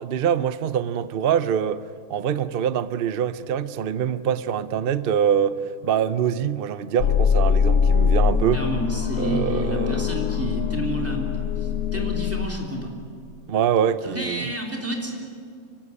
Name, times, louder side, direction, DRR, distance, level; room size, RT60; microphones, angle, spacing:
voice 1, 0.0-1.8 2.1-8.6 9.2-10.0 13.5-14.5, right 8 dB, 60° right, 0.6 m, -24 dB
sound 1, 7.0-12.5, left 7 dB, 70° left, 1.4 m, -22 dB
voice 2, 8.5-12.9 14.0-15.1, right 1 dB, 10° right, 3.5 m, -29 dB
25.0 x 16.5 x 9.9 m
omnidirectional pair, 1.7 m